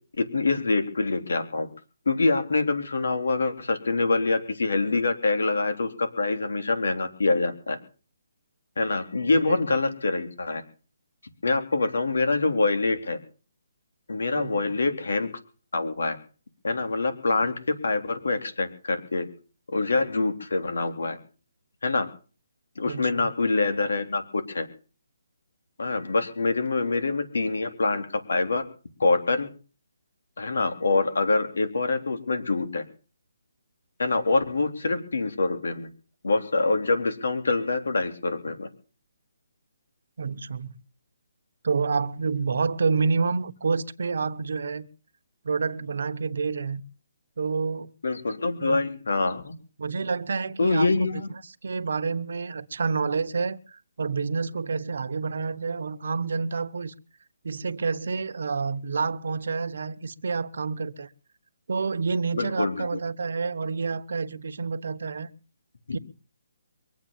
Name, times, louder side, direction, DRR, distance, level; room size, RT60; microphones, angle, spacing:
voice 1, 0.2-1.7 2.1-7.8 8.8-10.6 11.4-13.2 14.1-15.3 15.7-16.2 16.6-19.3 19.7-21.2 21.8-22.1 22.8-24.2 24.5-24.7 25.8-28.6 29.0-29.5 30.4-32.8 34.0-35.9 36.2-38.7 48.0-49.5 50.6-51.3 62.3-62.9 65.9-66.0, left 3 dB, 85° left, 3.9 m, -25 dB
voice 2, 14.3-14.6 22.8-23.3 40.2-40.7 41.6-44.9 45.4-46.8 47.4-47.9 48.6-48.9 49.8-51.1 51.4-56.9 57.4-61.1 61.7-65.3 65.9-66.0, right 4 dB, 65° right, 1.2 m, -28 dB
23.5 x 8.4 x 7.3 m
hypercardioid pair, 165°, 0 cm